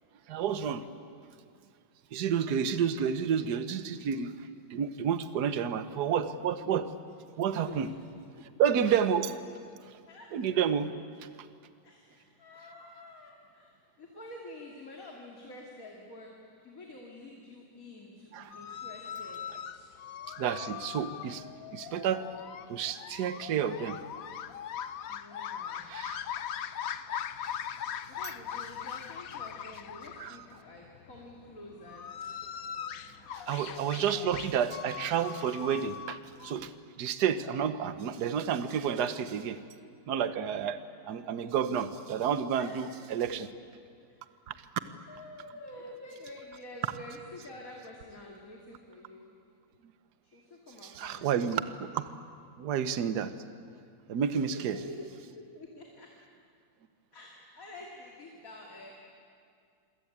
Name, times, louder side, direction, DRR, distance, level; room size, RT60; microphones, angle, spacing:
voice 1, 0.3-0.9 2.1-6.9 7.4-7.9 8.6-9.3 9.9-10.0 10.3-10.9 11.2-11.3 18.3-18.5 20.4-21.4 21.7-22.3 22.7-24.0 25.8-26.3 30.2-30.4 33.3-39.6 40.0-43.5 44.5-44.6 50.8-52.1 52.6-53.3 54.1-54.8, right 8 dB, 55° right, 11 dB, 1.5 m, -30 dB
voice 2, 11.8-16.3 16.6-19.9 25.1-25.9 28.1-32.3 33.1-33.5 33.9-34.3 39.3-39.5 42.6-42.8 44.1-44.2 45.1-49.3 50.2-51.5 54.4-55.1 55.4-56.1 57.1-58.9, left 1 dB, 40° left, -1 dB, 3.0 m, -48 dB
sound 1, 18.5-36.6, left 9 dB, 60° left, 1.0 m, -41 dB
27.5 x 24.0 x 8.8 m, 2.3 s
omnidirectional pair, 2.3 m